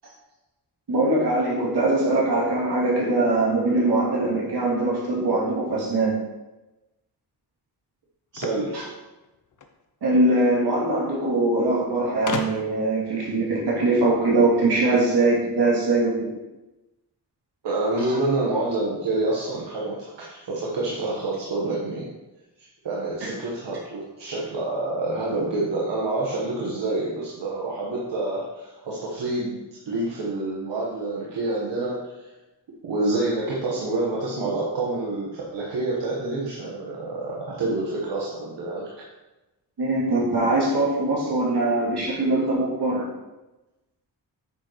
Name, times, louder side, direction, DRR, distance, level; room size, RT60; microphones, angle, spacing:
voice 1, 0.9-6.1 8.7-8.8 10.0-16.3 23.2-23.3 39.8-43.1, right 2 dB, 65° right, -5 dB, 2.8 m, -22 dB
sound 1, 8.3-9.8 10.9-11.0 11.2-11.3 12.3-12.9, left 4 dB, 50° left, 0.7 m, -33 dB
voice 2, 8.3-8.7 17.6-22.1 22.8-29.6 29.9-32.2 32.8-39.0, right 2 dB, 90° right, -5 dB, 1.4 m, -27 dB
9.0 x 6.7 x 3.1 m, 1.1 s
wide cardioid pair, 170°, 42 cm